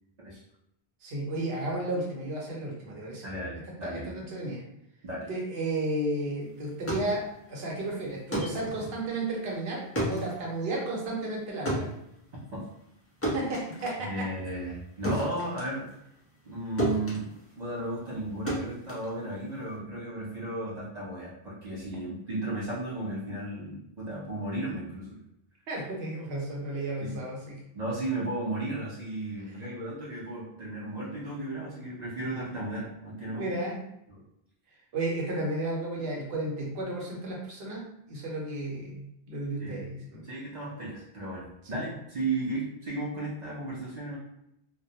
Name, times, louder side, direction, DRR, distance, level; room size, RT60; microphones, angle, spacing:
voice 1, 1.0-3.3 3.8-4.6 5.3-11.9 13.2-14.5 25.7-27.6 33.3-33.8 34.9-40.2 41.7-41.8, right 2 dB, 70° right, -3 dB, 1.0 m, -33 dB
voice 2, 3.2-4.1 5.0-5.3 12.5-12.6 14.0-15.9 16.5-17.3 17.6-25.2 27.0-27.2 27.7-33.5 34.1-34.2 39.6-39.9 40.2-44.2, right 2 dB, 50° right, -6 dB, 0.6 m, -34 dB
sound 1, 6.6-16.5 16.8-19.8, right 1 dB, 20° left, 0.4 m, -34 dB
2.2 x 2.0 x 2.7 m, 0.78 s
omnidirectional pair, 1.1 m